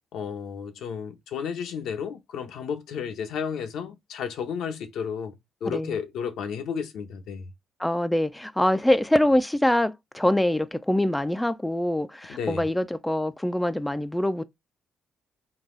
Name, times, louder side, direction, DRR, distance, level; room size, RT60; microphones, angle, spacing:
voice 1, 0.1-7.4 12.3-12.7, left 7 dB, 80° left, 0.7 m, -32 dB
voice 2, 5.7-6.0 7.8-14.4, left 1 dB, 5° left, 0.3 m, -24 dB
3.9 x 2.3 x 3.7 m
cardioid pair, 90°, 0 cm